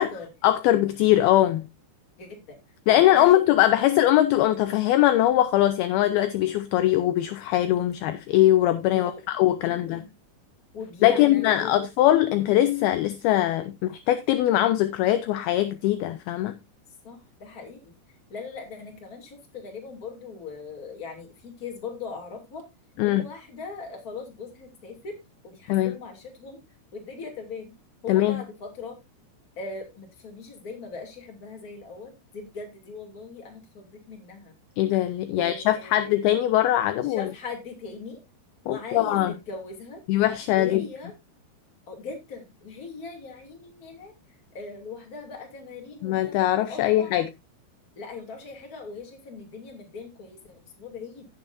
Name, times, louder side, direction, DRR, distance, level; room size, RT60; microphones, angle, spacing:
voice 1, 0.4-1.7 2.9-10.0 11.0-16.6 23.0-23.3 25.7-26.0 28.1-28.4 34.8-37.3 38.7-39.3 40.1-40.8 46.0-47.3, left 13 dB, 80° left, 2.3 m, -21 dB
voice 2, 2.2-2.6 2.8-3.4 8.9-9.2 9.6-10.1 10.7-11.7 17.0-18.0 18.3-22.6 23.0-25.2 25.4-26.6 26.9-27.7 28.0-29.0 29.6-34.5 35.3-36.2 37.0-38.2 38.6-40.0 40.5-41.1 41.9-44.1 44.5-46.3 46.7-47.2 48.0-51.3, left 4 dB, 25° left, 2.2 m, -40 dB
16.5 x 6.9 x 2.6 m
omnidirectional pair, 5.0 m